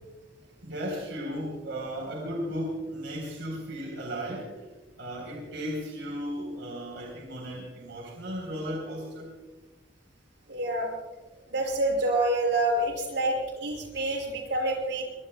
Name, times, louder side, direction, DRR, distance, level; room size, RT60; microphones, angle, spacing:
voice 1, 0.6-4.7 5.0-9.3 13.9-14.0, equal, 90° right, 0 dB, 3.8 m, -35 dB
voice 2, 10.5-10.9 11.5-15.0, right 1 dB, 65° right, 0 dB, 6.1 m, -27 dB
24.0 x 23.0 x 2.3 m, 1.2 s
head